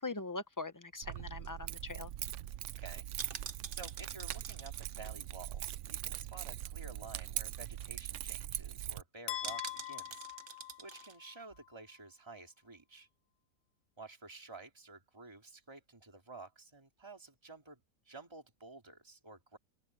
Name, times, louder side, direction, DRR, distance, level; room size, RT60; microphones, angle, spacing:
voice 1, 0.0-2.1, left 3 dB, 20° left, 0.5 m, -41 dB
sound 1, 0.9-6.3 6.6-6.7 7.0-7.3 7.7-7.8 8.0-8.4 9.4-11.2 11.5-11.6, right 7 dB, 50° right, 1.2 m, -48 dB
Keys jangling, 1.0-9.0, right 13 dB, 75° right, 0.6 m, -42 dB
voice 2, 2.8-10.3 10.8-13.1 14.0-19.6, right 3 dB, 15° right, 2.9 m, -52 dB
sound 2, 9.3-11.4, left 13 dB, 70° left, 0.6 m, -43 dB
open air
omnidirectional pair, 1.8 m